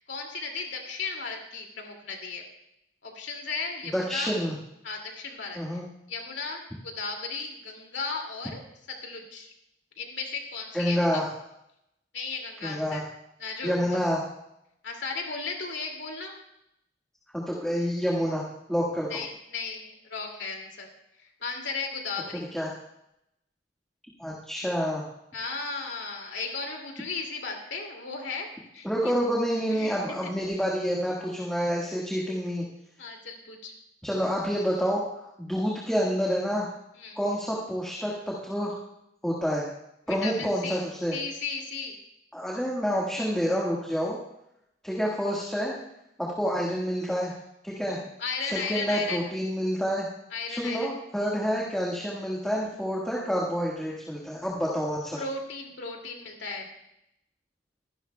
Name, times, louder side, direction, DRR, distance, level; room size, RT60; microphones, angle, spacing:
voice 1, 0.0-2.4 3.0-4.3 4.8-8.6 9.0-9.5 10.0-11.2 12.1-13.0 13.4-14.0 14.8-16.4 19.1-20.9 21.2-22.5 25.3-28.5 28.7-28.9 29.7-30.0 33.0-33.7 37.0-37.2 40.1-40.8 41.1-42.0 47.9-49.2 50.3-50.9 55.2-56.7, left 4 dB, 75° left, 2 dB, 2.4 m, -35 dB
voice 2, 3.9-4.6 5.5-5.9 10.7-11.3 12.6-13.0 13.6-14.2 17.3-19.1 22.5-22.7 24.2-25.0 28.8-32.6 34.0-36.7 37.1-38.8 39.2-39.6 40.1-41.1 42.3-44.2 44.8-45.7 46.2-47.3 47.6-48.0 48.5-50.1 50.5-55.2, equal, 5° left, -4 dB, 1.6 m, -28 dB
24.5 x 11.0 x 2.3 m, 0.81 s
head